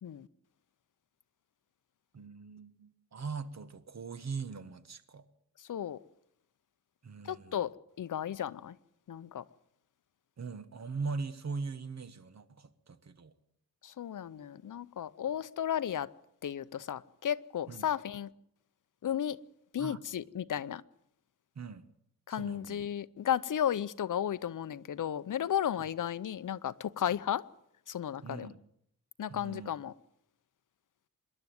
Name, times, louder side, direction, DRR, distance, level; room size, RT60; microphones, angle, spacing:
voice 1, 2.1-5.2 7.0-7.6 10.4-13.3 17.7-17.9 19.8-20.0 21.5-21.9 22.3-22.8 28.2-28.6 29.3-29.7, right 4 dB, 50° right, 1.3 m, -41 dB
voice 2, 5.6-6.0 7.2-8.8 9.1-9.4 13.8-16.1 16.4-18.3 19.0-19.4 19.7-20.8 22.3-27.4 27.9-28.5 29.2-29.9, left 9 dB, 60° left, 0.7 m, -34 dB
26.0 x 11.0 x 9.3 m
wide cardioid pair, 150°, 35 cm